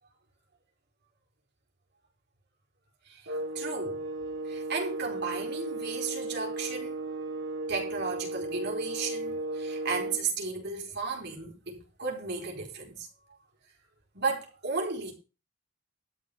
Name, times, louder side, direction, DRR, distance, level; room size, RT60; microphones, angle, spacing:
voice 1, 3.0-4.0 4.4-7.0 7.7-13.4 14.1-15.1, right 4 dB, 55° right, 4.9 m, -34 dB
sound 1, 3.3-10.3, right 2 dB, 75° right, 2.2 m, -35 dB
13.0 x 6.0 x 7.0 m
head